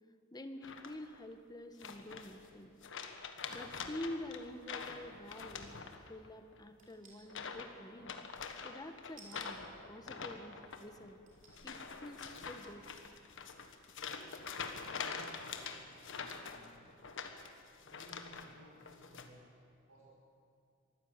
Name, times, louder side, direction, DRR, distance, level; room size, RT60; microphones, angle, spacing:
voice 1, 0.3-2.8 3.5-5.7 6.1-8.2 8.6-9.6 9.9-11.2 11.6-12.8, left 1 dB, 20° left, 8 dB, 1.2 m, -47 dB
sound 1, 0.6-1.2 1.8-2.5 2.8-6.3 6.5-6.8 7.3-7.7 8.0-18.5 18.8-19.3, left 5 dB, 65° left, 1.5 m, -45 dB
sound 2, 6.8-7.3 9.2-9.4 10.3-10.4 11.3-11.8 12.3-12.4, right 3 dB, 40° right, 4.2 m, -58 dB
voice 2, 14.4-16.9 17.8-19.5 19.9-20.0, right 1 dB, 75° right, -5 dB, 5.0 m, -59 dB
23.5 x 15.0 x 8.1 m, 2.4 s
head